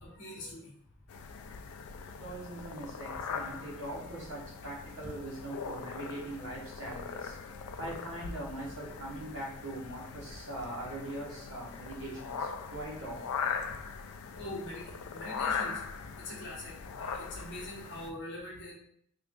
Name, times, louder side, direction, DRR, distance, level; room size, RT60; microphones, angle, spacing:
voice 1, 0.0-0.7 2.2-2.3 14.3-15.8 16.2-18.7, left 1 dB, 50° left, -4 dB, 0.9 m, -43 dB
sound 1, 1.1-18.1, left 6 dB, 85° left, 0.3 m, -40 dB
voice 2, 2.2-7.4 7.8-13.4, right 1 dB, 60° right, -5 dB, 1.3 m, -41 dB
3.5 x 2.3 x 3.7 m, 0.67 s
head